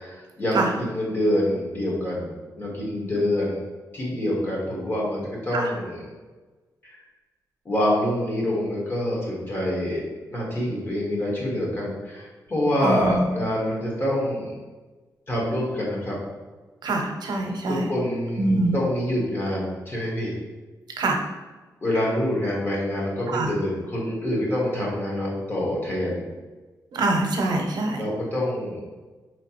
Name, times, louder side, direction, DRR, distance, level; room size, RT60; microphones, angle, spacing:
voice 1, 0.0-3.6 3.9-6.0 6.8-7.0 7.6-10.0 10.3-14.5 15.3-16.2 17.7-20.3 21.8-26.2 28.0-28.8, left 1 dB, 30° left, -4 dB, 1.3 m, -26 dB
voice 2, 12.8-13.2 16.8-17.9 18.4-18.8 21.0-21.2 23.3-23.5 26.9-28.0, right 2 dB, 80° right, 2 dB, 0.7 m, -24 dB
4.8 x 3.1 x 2.9 m, 1.3 s
wide cardioid pair, 150°, 7 cm